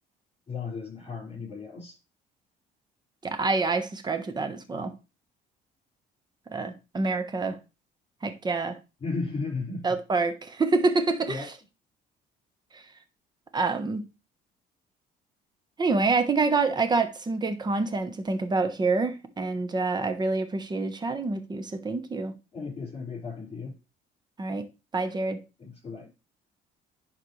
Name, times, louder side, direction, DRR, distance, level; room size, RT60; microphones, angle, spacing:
voice 1, 0.5-2.0 9.0-9.9 11.3-11.5 22.5-23.8 25.6-26.1, left 4 dB, 35° left, 5.0 m, -35 dB
voice 2, 3.2-4.9 6.5-7.6 8.2-8.8 9.8-11.5 12.7-12.8 13.5-14.0 15.8-22.3 24.4-24.7 24.9-25.4, right 3 dB, 25° right, 1.1 m, -27 dB
10.5 x 4.4 x 3.2 m
cardioid pair, 110°, 17 cm